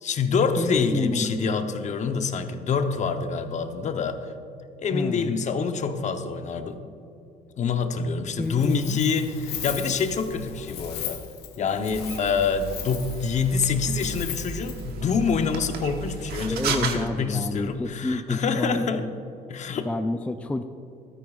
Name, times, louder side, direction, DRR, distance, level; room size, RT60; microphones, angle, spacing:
voice 1, 0.0-4.3 4.8-6.8 7.6-11.2 11.6-19.1 19.5-19.9, left 5 dB, 45° left, 7 dB, 0.8 m, -26 dB
voice 2, 0.6-1.6 4.9-5.3 8.4-9.0 16.5-19.1 19.9-20.6, left 2 dB, 10° left, 7 dB, 0.4 m, -29 dB
Wind, 8.4-14.9, left 9 dB, 75° left, 1.2 m, -38 dB
sound 1, 11.9-17.0, right 6 dB, 70° right, 1.2 m, -34 dB
14.0 x 13.0 x 2.4 m, 2.8 s
cardioid pair, 110°, 17 cm